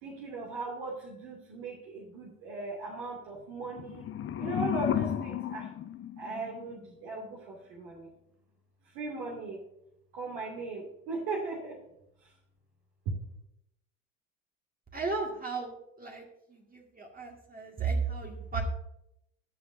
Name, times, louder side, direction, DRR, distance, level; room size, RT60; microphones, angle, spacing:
voice 1, 0.0-4.1 4.4-5.7 6.2-8.1 8.9-9.6 10.1-11.8 12.2-12.3, right 3 dB, 60° right, -2 dB, 2.4 m, -38 dB
sound 1, 3.6-6.7, left 10 dB, 30° left, 0.8 m, -33 dB
voice 2, 14.9-16.2 16.5-18.6, right 4 dB, 20° right, 0 dB, 1.9 m, -34 dB
20.5 x 7.7 x 2.6 m, 0.82 s
figure-of-eight pair, 65°, 40 cm